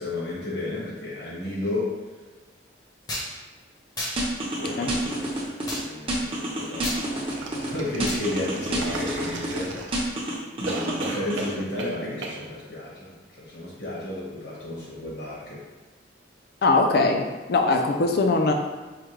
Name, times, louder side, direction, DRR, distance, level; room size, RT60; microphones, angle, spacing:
voice 1, 0.0-2.0 4.6-10.0 10.6-15.6, left 2 dB, 75° left, -6 dB, 1.4 m, -33 dB
sound 1, 3.1-3.3 4.0-4.2 5.7-5.8 6.8-7.0 8.1-8.2, left 1 dB, 20° left, 0.7 m, -31 dB
sound 2, 4.2-5.8 6.1-7.7 8.0-9.6 9.9-11.5, right 1 dB, 30° right, 0.6 m, -29 dB
sound 3, 7.3-10.2 10.7-12.0 12.2-12.4, right 2 dB, 75° right, 0.5 m, -35 dB
voice 2, 16.6-18.5, left 3 dB, 55° left, 3 dB, 0.4 m, -21 dB
4.8 x 2.2 x 3.1 m, 1.3 s
head